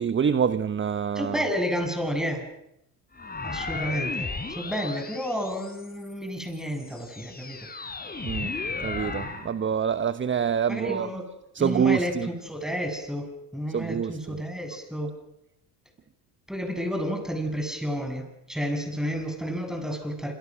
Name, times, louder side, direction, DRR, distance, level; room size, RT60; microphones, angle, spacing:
voice 1, 0.0-1.4 8.2-8.5 8.8-11.1 11.5-12.3 13.7-14.4, right 7 dB, 25° right, 1.1 m, -26 dB
voice 2, 1.1-2.5 3.4-7.7 10.7-11.2 11.6-15.1 16.5-20.3, equal, ahead, 7.8 m, -31 dB
sound 1, 3.1-6.1 6.7-9.5, left 3 dB, 20° left, 4.3 m, -34 dB
29.5 x 27.0 x 6.4 m
hypercardioid pair, 75°, 49 cm